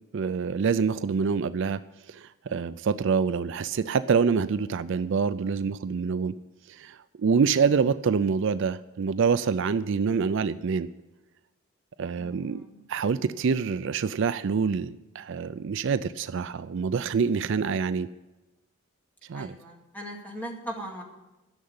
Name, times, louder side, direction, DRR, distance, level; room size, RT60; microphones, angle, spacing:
voice 1, 0.1-1.8 2.1-6.3 6.7-10.9 12.0-12.6 12.9-18.1 19.3-19.5, right 5 dB, 60° right, 13 dB, 0.4 m, -26 dB
voice 2, 12.2-12.8 19.3-21.0, right 1 dB, 10° left, 0 dB, 2.1 m, -39 dB
12.5 x 6.6 x 9.6 m, 1.1 s
head